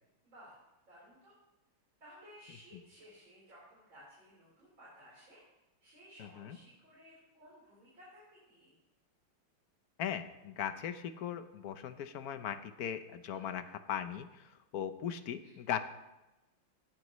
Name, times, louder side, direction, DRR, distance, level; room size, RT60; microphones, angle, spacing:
voice 1, 0.2-0.6 0.9-1.4 2.0-5.4 5.8-8.7 13.3-13.6 15.4-15.6, equal, 65° right, -7 dB, 5.1 m, -57 dB
voice 2, 6.2-6.6 10.0-15.8, left 9 dB, 60° left, 10 dB, 1.0 m, -39 dB
17.5 x 13.0 x 3.1 m, 1.0 s
omnidirectional pair, 2.3 m